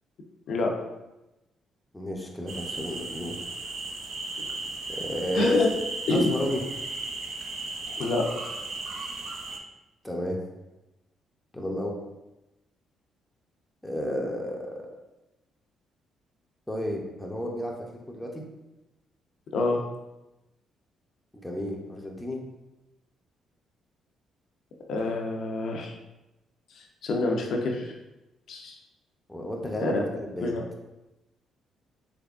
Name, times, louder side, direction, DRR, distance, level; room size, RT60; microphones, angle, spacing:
voice 1, 1.9-3.5 4.9-5.6 6.1-6.6 10.0-10.4 11.5-11.9 13.8-14.7 16.7-18.4 21.4-22.5 29.3-30.6, equal, 10° left, -1 dB, 0.6 m, -32 dB
sound 1, 2.5-9.6, right 3 dB, 65° right, 0.5 m, -36 dB
voice 2, 5.3-5.7 6.1-6.3 7.9-8.2 19.5-19.8 24.9-25.9 26.8-27.9 28.5-28.8 29.8-30.0 30.4-30.6, left 2 dB, 70° left, 1 dB, 0.6 m, -26 dB
3.6 x 3.3 x 2.4 m, 0.98 s
cardioid pair, 90°, 0 cm